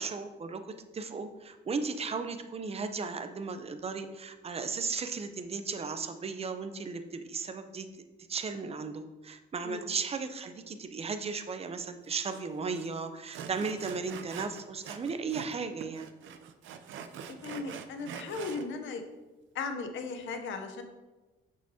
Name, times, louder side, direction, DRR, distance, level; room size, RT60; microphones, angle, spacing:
voice 1, 0.0-7.9 8.3-16.1, right 4 dB, 30° right, 8 dB, 0.6 m, -36 dB
Sawing, 12.3-12.4 12.7-12.9 13.3-15.6 15.8-18.6, right 7 dB, 75° right, 0.5 m, -44 dB
voice 2, 17.4-19.0 19.5-20.8, left 4 dB, 75° left, 6 dB, 0.7 m, -37 dB
6.1 x 5.6 x 2.8 m, 1.1 s
cardioid pair, 90°, 20 cm